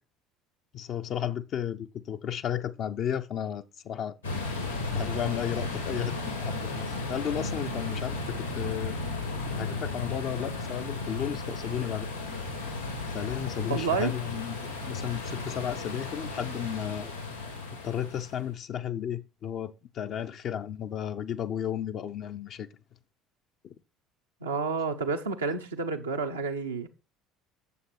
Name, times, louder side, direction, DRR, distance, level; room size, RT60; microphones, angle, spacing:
voice 1, 0.7-4.2 4.9-9.0 9.5-12.1 13.1-17.2 17.8-22.7 23.6-23.7, left 9 dB, 45° left, 0.6 m, -33 dB
sound 1, 4.2-18.5, left 3 dB, 85° left, 2.5 m, -34 dB
voice 2, 13.7-14.1 24.4-26.9, right 4 dB, 80° right, 0.8 m, -30 dB
8.3 x 7.2 x 4.3 m
figure-of-eight pair, 60°, 0 cm